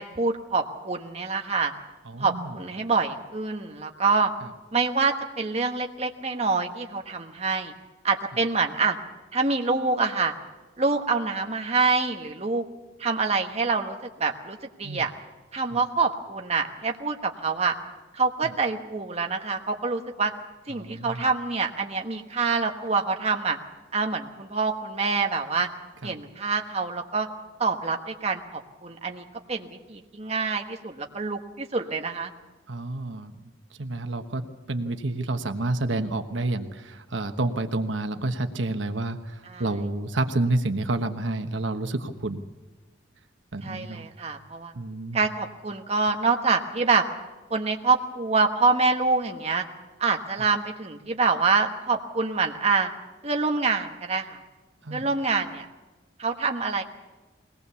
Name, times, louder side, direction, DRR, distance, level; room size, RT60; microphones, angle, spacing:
voice 1, 0.0-1.7 2.2-4.3 4.7-7.7 8.0-9.0 9.3-10.3 10.8-12.6 13.0-15.1 15.5-17.7 18.1-20.3 20.7-23.6 23.9-25.7 26.0-27.3 27.6-32.3 39.5-39.6 43.6-44.7 45.1-47.0 47.5-49.6 50.0-52.9 53.2-54.4 54.9-55.6 56.2-56.8, right 4 dB, 35° right, 3 dB, 1.2 m, -26 dB
voice 2, 2.0-2.6 4.4-4.5 14.8-15.1 15.7-15.8 18.4-18.5 20.7-21.3 26.0-26.2 32.7-33.3 33.8-34.4 34.7-42.4 43.5-44.1 44.7-45.2 50.4-50.5 54.8-55.1, right 2 dB, 80° right, 7 dB, 1.2 m, -29 dB
21.5 x 18.5 x 7.0 m, 1.2 s
head